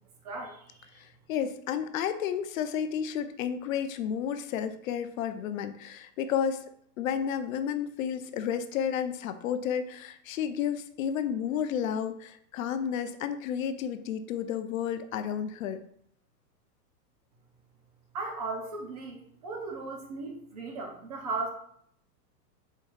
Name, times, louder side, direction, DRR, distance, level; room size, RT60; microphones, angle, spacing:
voice 1, 0.2-1.0 18.1-21.5, right 3 dB, 25° right, 1 dB, 0.4 m, -37 dB
voice 2, 1.0-6.7 7.0-15.8, left 8 dB, 55° left, 10 dB, 0.5 m, -31 dB
4.5 x 2.3 x 4.6 m, 0.67 s
hypercardioid pair, 145°, 50 cm